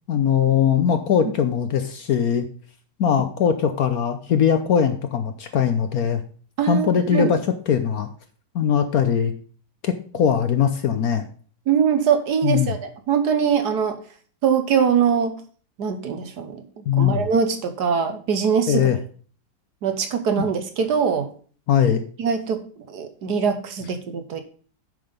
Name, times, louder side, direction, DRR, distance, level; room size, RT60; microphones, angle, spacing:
voice 1, 0.0-2.5 3.0-6.2 6.7-7.4 7.7-8.1 8.5-9.3 9.8-11.2 12.4-12.7 16.9-17.3 18.7-19.0 20.4-20.5 21.7-22.0, left 8 dB, 60° left, 9 dB, 1.0 m, -20 dB
voice 2, 6.6-7.3 11.7-14.0 14.4-15.4 15.8-18.9 19.8-21.3 22.2-24.4, right 7 dB, 65° right, 8 dB, 1.5 m, -22 dB
8.8 x 5.7 x 5.2 m, 0.43 s
omnidirectional pair, 2.0 m